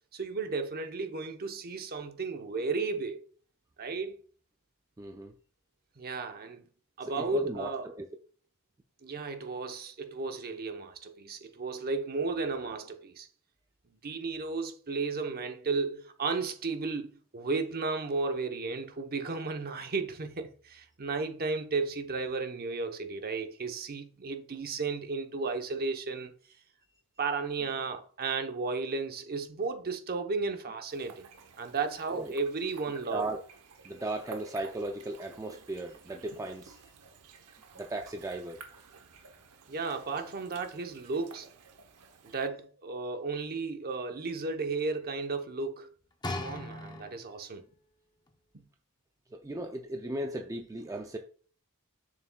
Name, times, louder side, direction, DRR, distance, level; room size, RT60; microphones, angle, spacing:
voice 1, 0.1-3.2 3.8-4.2 6.0-6.6 7.0-7.9 9.0-13.3 14.0-26.3 27.2-31.3 31.6-33.2 39.7-41.5 42.2-45.9 46.3-47.6, right 4 dB, 45° right, 0.8 m, -34 dB
voice 2, 5.0-5.3 7.0-8.1 32.1-32.3 33.1-33.4 33.9-36.8 37.8-38.6 49.3-51.2, right 1 dB, 15° right, 0.4 m, -36 dB
sound 1, 30.9-42.5, right 4 dB, 80° right, 0.8 m, -52 dB
sound 2, 46.2-47.5 48.3-48.4, left 2 dB, 20° left, 0.7 m, -38 dB
7.1 x 6.5 x 2.2 m
head